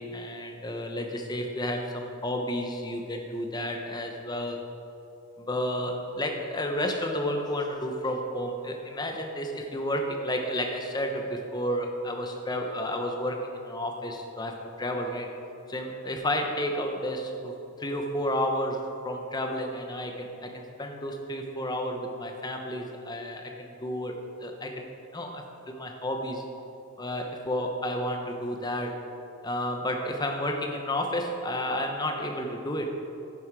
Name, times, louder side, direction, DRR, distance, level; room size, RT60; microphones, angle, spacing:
voice 1, 0.0-4.6 5.5-15.3 15.7-26.4 27.0-29.0 29.4-32.9, equal, 20° left, 3 dB, 0.9 m, -31 dB
10.5 x 9.6 x 4.8 m, 2.9 s
head